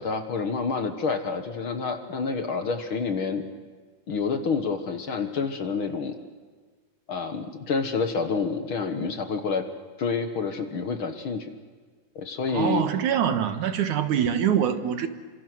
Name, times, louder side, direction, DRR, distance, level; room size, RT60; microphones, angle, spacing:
voice 1, 0.0-3.4 4.1-6.2 7.1-9.6 10.0-11.5 12.1-12.8, left 5 dB, 50° left, 1.7 m, -28 dB
voice 2, 12.5-15.1, right 9 dB, 70° right, 2.7 m, -24 dB
28.5 x 26.0 x 6.3 m
omnidirectional pair, 3.8 m